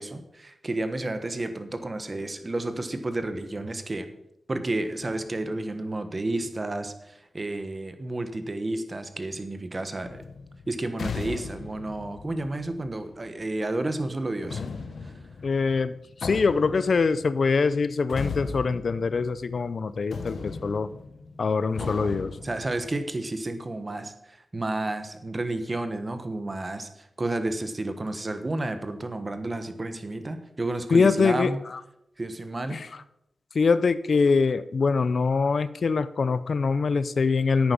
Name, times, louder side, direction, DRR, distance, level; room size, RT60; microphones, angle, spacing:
voice 1, 0.0-4.1 4.5-10.2 10.7-14.6 15.0-15.1 21.8-31.6 32.2-32.8, right 2 dB, 35° right, 9 dB, 1.3 m, -31 dB
sound 1, 10.0-13.4 14.4-19.8 20.1-22.9, left 5 dB, 80° left, 1.0 m, -38 dB
voice 2, 15.4-15.9 16.2-20.9 21.4-22.3 30.9-31.5 32.7-32.9 33.5-37.7, left 4 dB, 65° left, 14 dB, 0.6 m, -23 dB
10.5 x 8.9 x 5.4 m, 0.82 s
wide cardioid pair, 75°, 0 cm